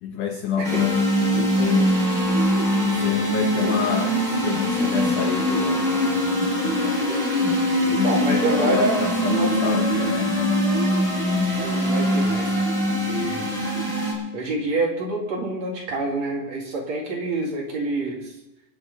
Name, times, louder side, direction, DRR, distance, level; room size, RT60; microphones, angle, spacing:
voice 1, 0.0-1.9 2.9-7.0 7.9-10.4, left 8 dB, 85° left, 6 dB, 1.8 m, -28 dB
sound 1, 0.6-14.1, equal, 25° right, 4.9 m, -22 dB
voice 2, 7.9-9.0 9.3-9.5 11.5-13.5 14.3-18.3, right 2 dB, 45° right, -1 dB, 2.9 m, -27 dB
26.5 x 9.9 x 4.0 m, 0.94 s
omnidirectional pair, 4.8 m